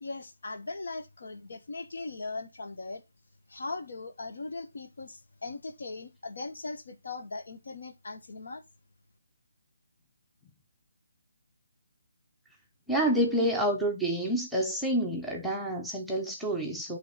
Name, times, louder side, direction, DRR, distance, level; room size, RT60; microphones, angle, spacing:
voice 1, 0.0-3.0 3.5-8.6, left 3 dB, 65° left, 1.2 m, -39 dB
voice 2, 12.9-17.0, right 1 dB, ahead, 0.6 m, -28 dB
8.9 x 3.1 x 4.1 m
hypercardioid pair, 170°, 0 cm